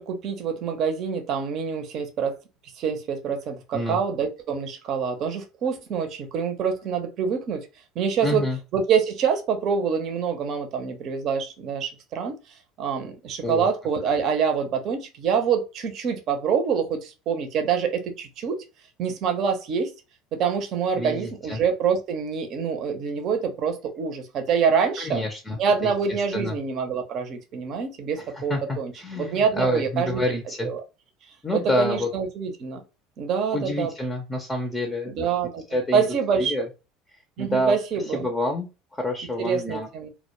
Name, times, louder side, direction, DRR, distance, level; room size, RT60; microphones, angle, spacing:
voice 1, 0.0-2.3 2.8-7.7 8.0-8.4 8.7-12.4 12.8-18.6 19.0-19.9 20.3-25.2 25.6-30.8 31.5-32.8 33.2-33.9 35.0-36.5 37.4-38.3 39.4-40.1, right 6 dB, 55° right, 0.6 m, -26 dB
voice 2, 8.2-8.6 13.4-13.7 20.9-21.6 25.0-25.9 26.3-26.6 28.3-30.7 31.4-32.1 33.5-35.1 35.7-36.1 36.4-36.7 37.4-37.8 38.1-39.9, left 1 dB, 15° left, 0.6 m, -28 dB
2.2 x 2.1 x 3.0 m
supercardioid pair, 90°, 0 cm